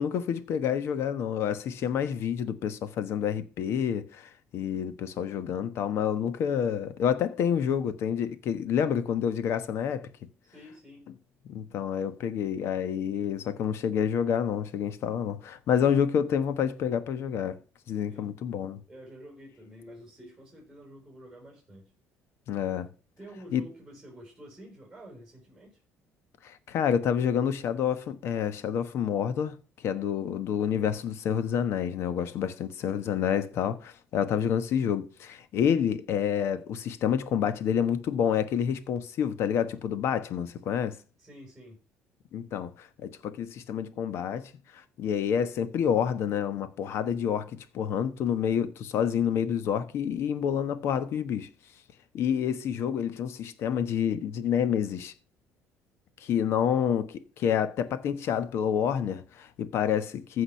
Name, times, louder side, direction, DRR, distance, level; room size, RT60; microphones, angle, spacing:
voice 1, 0.0-10.1 11.5-17.6 17.9-18.8 22.5-22.9 23.5-23.6 26.4-29.6 29.8-41.0 42.3-51.5 52.1-55.1 56.2-60.4, left 8 dB, 55° left, 1.2 m, -28 dB
voice 2, 10.4-11.1 18.0-18.3 18.9-21.9 23.2-25.8 41.2-41.8, equal, 5° right, 4.7 m, -49 dB
14.5 x 5.0 x 5.7 m
cardioid pair, 155°, 5 cm